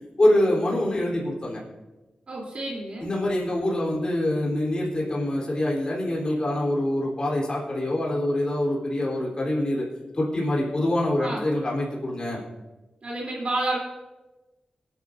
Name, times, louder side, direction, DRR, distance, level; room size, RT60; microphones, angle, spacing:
voice 1, 0.2-1.6 3.0-9.9 10.1-12.4, left 1 dB, 40° left, -4 dB, 3.7 m, -25 dB
voice 2, 2.3-3.1 11.2-11.4 13.0-13.8, right 2 dB, 55° right, -3 dB, 3.4 m, -29 dB
24.0 x 10.0 x 2.7 m, 1.1 s
cardioid pair, 70°, 2 cm